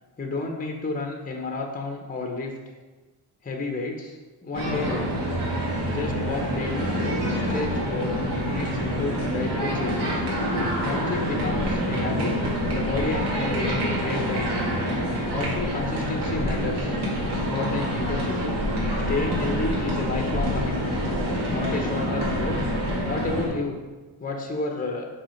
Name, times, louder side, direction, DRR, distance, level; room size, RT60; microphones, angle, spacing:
voice 1, 0.2-2.5 3.4-5.1 5.9-6.9 7.3-8.2 8.5-10.2 10.8-12.3 12.7-14.8 15.3-17.0 17.5-18.6 19.1-21.0 21.5-22.6 23.0-23.8 24.2-25.1, left 3 dB, 20° left, 2 dB, 0.8 m, -31 dB
sound 1, 4.5-23.5, equal, 60° right, 2.4 m, -26 dB
6.0 x 4.8 x 5.7 m, 1.2 s
wide cardioid pair, 155°, 44 cm